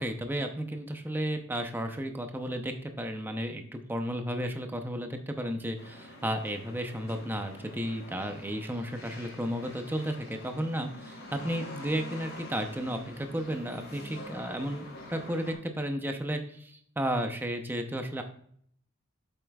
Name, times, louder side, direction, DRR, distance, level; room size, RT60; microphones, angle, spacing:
voice 1, 0.0-18.2, equal, 10° right, 5 dB, 0.6 m, -33 dB
sound 1, 5.8-15.5, left 1 dB, 75° left, 3.0 m, -46 dB
8.0 x 7.4 x 2.3 m, 0.63 s
head